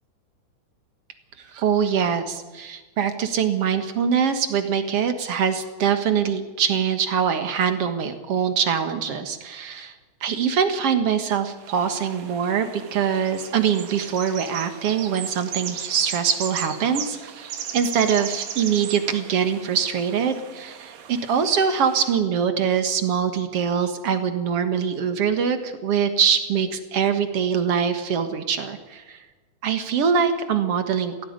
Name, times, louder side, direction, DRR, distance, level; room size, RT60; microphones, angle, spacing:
voice 1, 1.4-9.9 10.2-29.2 29.6-31.2, right 7 dB, 50° right, 8 dB, 2.0 m, -23 dB
sound 1, 11.6-22.2, right 9 dB, 75° right, 3.2 m, -36 dB
17.0 x 16.0 x 9.5 m, 1.3 s
omnidirectional pair, 4.1 m